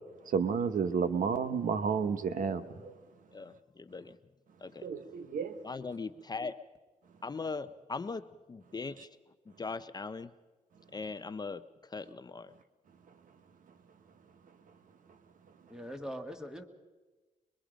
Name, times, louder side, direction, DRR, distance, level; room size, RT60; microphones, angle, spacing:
voice 1, 0.3-2.9 4.8-5.6, right 6 dB, 75° right, 1.1 m, -31 dB
voice 2, 3.3-4.2 4.6-4.9 5.6-6.5 7.2-9.1 9.5-10.3 10.9-12.5, left 4 dB, 30° left, 0.6 m, -40 dB
voice 3, 15.7-16.6, equal, 5° right, 1.8 m, -41 dB
23.0 x 22.5 x 5.1 m
cardioid pair, 90°, 14 cm